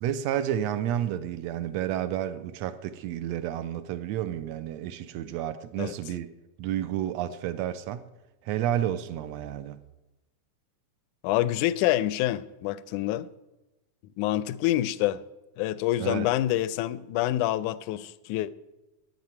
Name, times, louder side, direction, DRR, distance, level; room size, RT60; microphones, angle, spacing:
voice 1, 0.0-6.3 6.6-8.1 8.4-9.8 16.0-16.3, right 11 dB, 75° right, 1.7 m, -30 dB
voice 2, 11.2-13.3 14.2-15.2 15.6-18.6, left 14 dB, 90° left, 2.1 m, -27 dB
10.5 x 9.5 x 9.5 m
omnidirectional pair, 3.4 m